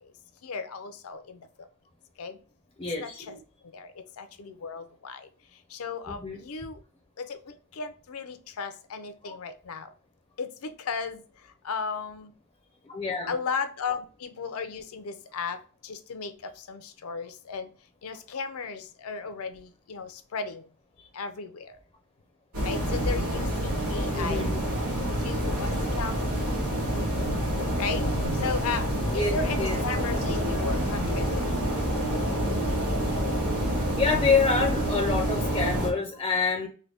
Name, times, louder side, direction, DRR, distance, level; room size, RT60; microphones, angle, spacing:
voice 1, 0.4-1.4 2.2-2.4 3.0-3.4 3.7-3.9 4.2-5.3 5.7-6.8 7.2-9.9 10.4-11.2 11.6-12.3 13.3-15.6 15.8-17.7 18.0-20.6 21.1-21.6 22.6-24.5 25.2-26.4 27.8-28.0 28.4-28.8 29.1-31.6, left 5 dB, 70° left, 10 dB, 0.5 m, -35 dB
voice 2, 2.8-3.3 6.1-6.4 9.2-9.4 12.9-13.3 24.2-24.6 29.1-29.8 34.0-36.7, left 4 dB, 20° left, 2 dB, 0.5 m, -27 dB
sound 1, 22.5-35.9, equal, 70° right, 1.7 m, -27 dB
3.8 x 2.1 x 3.3 m, 0.39 s
head